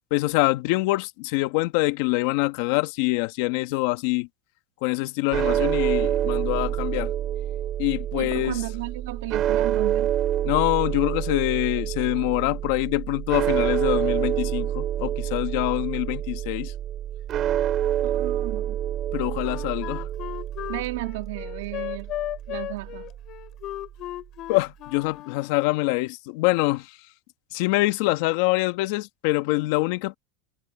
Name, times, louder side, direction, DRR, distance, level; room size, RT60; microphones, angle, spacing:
voice 1, 0.1-4.3 4.8-7.1 7.8-8.6 10.4-16.7 19.1-20.1 24.5-27.0 27.5-30.2, left 21 dB, 65° left, 1.6 m, -25 dB
sound 1, 5.3-23.5, right 11 dB, 40° right, 3.0 m, -27 dB
voice 2, 8.1-10.1 18.0-18.8 20.7-22.1 22.5-23.1, right 17 dB, 85° right, 2.7 m, -34 dB
Wind instrument woodwind instrument, 19.4-25.7, left 15 dB, 45° left, 5.9 m, -35 dB
supercardioid pair, 135°, 0 cm